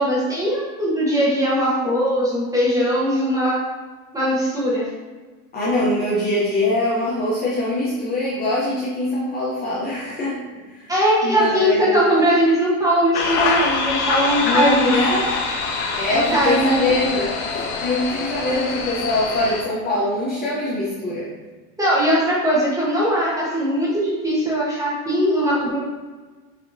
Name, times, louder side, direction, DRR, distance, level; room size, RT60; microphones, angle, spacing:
voice 1, 0.0-3.6 4.1-4.9 10.9-14.9 16.1-16.8 21.8-25.8, equal, 10° right, -6 dB, 1.1 m, -20 dB
voice 2, 5.5-10.4 10.7-10.9 11.2-11.9 14.4-15.2 15.9-21.3, left 1 dB, 20° left, -7 dB, 0.7 m, -23 dB
sound 1, 13.1-19.6, left 4 dB, 90° left, 0.9 m, -25 dB
6.2 x 2.8 x 2.6 m, 1.4 s
supercardioid pair, 140°, 43 cm